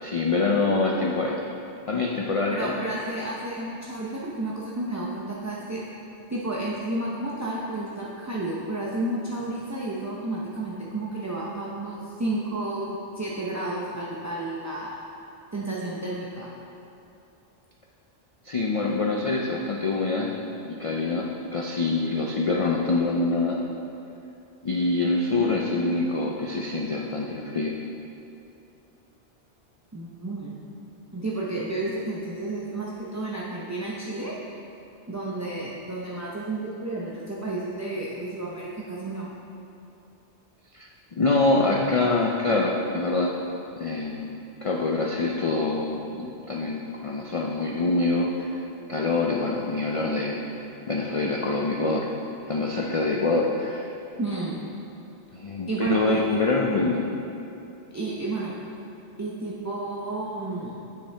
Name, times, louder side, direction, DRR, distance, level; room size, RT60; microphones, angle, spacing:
voice 1, 0.0-1.4 1.9-2.7 18.5-20.3 20.6-21.2 21.5-23.6 24.6-27.8 40.7-43.3 43.8-48.6 48.9-50.4 50.9-52.1 52.5-53.9 55.3-57.1, left 3 dB, 50° left, -1 dB, 0.4 m, -25 dB
voice 2, 2.5-5.8 6.3-15.0 15.5-16.5 29.9-30.6 31.1-34.3 35.1-39.3 54.2-54.6 55.7-56.2 56.7-56.8 57.9-58.5 59.2-60.7, right 2 dB, 25° right, -6 dB, 0.4 m, -31 dB
8.2 x 6.6 x 3.3 m, 2.7 s
omnidirectional pair, 1.2 m